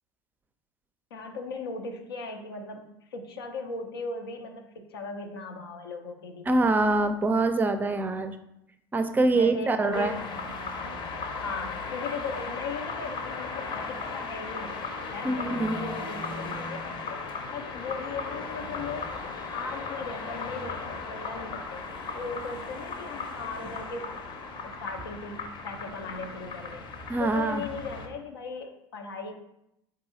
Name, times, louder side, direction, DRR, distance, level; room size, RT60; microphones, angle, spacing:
voice 1, 1.1-6.7 9.3-10.1 11.4-17.2 17.5-19.1 19.5-21.8 22.1-24.1 24.5-26.8 27.2-29.3, left 3 dB, 85° left, 3 dB, 0.6 m, -38 dB
voice 2, 6.5-8.4 8.9-10.1 15.2-15.8 27.1-27.6, right 2 dB, 15° right, 9 dB, 0.4 m, -24 dB
sound 1, 9.9-28.1, left 4 dB, 40° left, 0.7 m, -36 dB
3.9 x 2.7 x 3.7 m, 0.81 s
hypercardioid pair, 80°, 12 cm